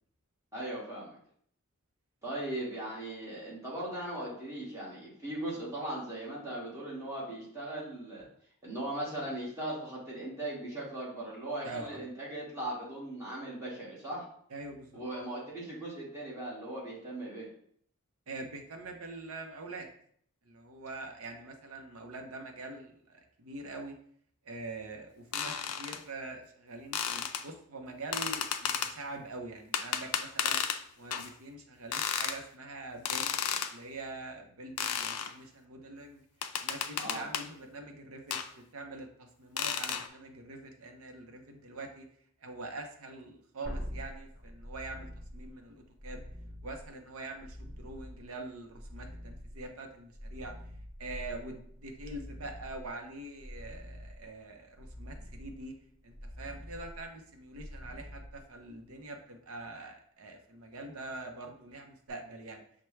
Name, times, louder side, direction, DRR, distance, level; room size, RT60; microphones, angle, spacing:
voice 1, 0.5-1.2 2.2-8.3 8.6-14.2 14.9-17.5 37.0-37.2, right 1 dB, 15° right, -7 dB, 1.4 m, -38 dB
voice 2, 11.6-12.1 14.5-15.0 18.3-19.9 20.4-24.0 24.4-30.6 31.0-33.4 33.7-36.2 36.6-42.1 42.4-46.3 46.6-50.5 51.0-55.7 56.0-62.6, right 2 dB, 70° right, 4 dB, 0.7 m, -44 dB
sound 1, 25.3-26.0 26.9-27.4 28.1-28.9 29.7-30.8 31.1-31.3 31.9-32.4 33.1-33.7 34.8-35.3 36.4-37.5 38.3-38.5 39.6-40.1, left 8 dB, 85° left, 0.4 m, -33 dB
sound 2, 43.6-58.9 62.1-62.2, equal, 50° right, 1.2 m, -46 dB
5.6 x 2.2 x 3.2 m, 0.63 s
head